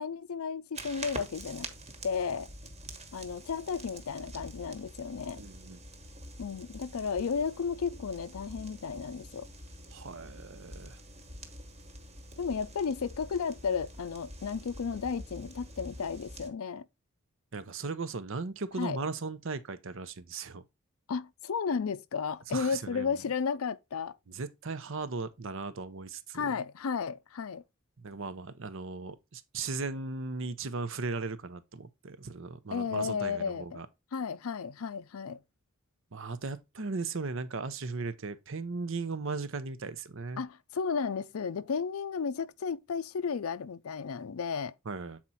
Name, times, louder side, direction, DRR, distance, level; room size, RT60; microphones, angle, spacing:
voice 1, 0.0-1.7 2.0-2.5 3.1-5.4 6.4-9.5 12.4-16.9 18.8-19.0 21.1-24.2 26.3-27.6 32.7-33.8 34.1-35.4 40.4-44.7, left 5 dB, 80° left, 0.5 m, -33 dB
sound 1, 0.7-16.5, right 1 dB, 30° right, 1.2 m, -46 dB
voice 2, 5.4-5.8 9.9-11.0 17.5-20.6 22.5-23.1 24.3-26.5 28.0-33.9 36.1-40.4 44.9-45.2, right 4 dB, 65° right, 0.8 m, -37 dB
7.4 x 4.4 x 4.1 m
head